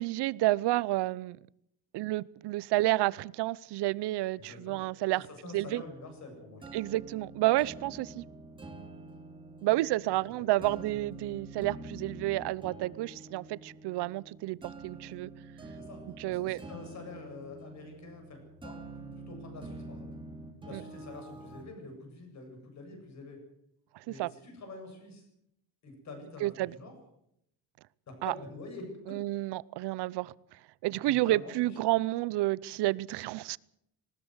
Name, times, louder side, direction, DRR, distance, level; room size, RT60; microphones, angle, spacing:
voice 1, 0.0-1.4 1.9-5.2 5.5-5.8 6.7-8.3 9.6-15.3 16.2-16.6 20.7-20.8 23.9-24.3 26.4-26.7 28.2-28.3 29.1-30.3 30.8-33.6, right 17 dB, 85° right, 21 dB, 0.8 m, -30 dB
voice 2, 4.3-4.8 5.1-6.8 10.3-10.9 15.8-20.1 20.6-23.4 24.0-25.3 25.8-26.9 28.1-29.2 30.8-31.8, left 3 dB, 45° left, 4 dB, 7.9 m, -47 dB
sound 1, 5.5-21.6, right 2 dB, 10° right, 2.6 m, -47 dB
19.5 x 19.5 x 8.0 m, 0.75 s
cardioid pair, 175°, 39 cm